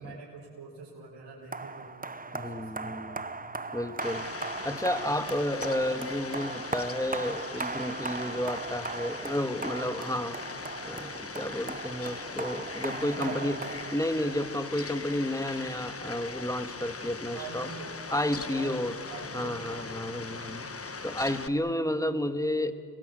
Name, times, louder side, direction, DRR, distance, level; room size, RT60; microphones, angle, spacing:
voice 1, 0.0-3.2 3.5-3.6 4.9-5.2 12.9-13.5 17.3-17.9 18.5-18.8 19.1-19.6 20.3-20.6, right 4 dB, 90° right, -5 dB, 4.7 m, -44 dB
sound 1, 1.5-14.5, right 3 dB, 20° right, 0.9 m, -38 dB
voice 2, 2.3-3.4 3.7-10.6 10.8-13.6 13.9-17.7 18.1-19.0 19.3-20.7 21.0-22.7, left 1 dB, 10° left, 9 dB, 1.8 m, -31 dB
Fowl, 4.0-21.5, left 4 dB, 35° left, 1.5 m, -40 dB
30.0 x 20.5 x 8.1 m, 2.4 s
cardioid pair, 55°, 41 cm